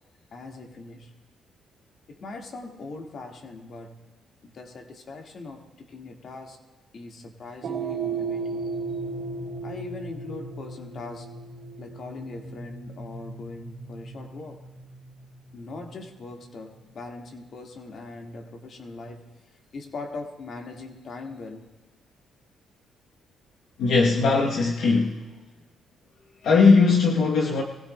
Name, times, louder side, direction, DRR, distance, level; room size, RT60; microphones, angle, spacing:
voice 1, 0.3-1.1 2.1-4.1 4.4-6.6 6.9-8.8 9.6-11.3 11.8-14.6 15.5-19.3 19.7-21.7, left 3 dB, 55° left, 2 dB, 1.8 m, -40 dB
sound 1, 7.6-16.1, right 4 dB, 80° right, 2.4 m, -35 dB
voice 2, 23.8-25.2 26.4-27.6, left 4 dB, 75° left, -1 dB, 0.9 m, -19 dB
21.5 x 16.0 x 2.2 m, 1.2 s
cardioid pair, 90°, 0 cm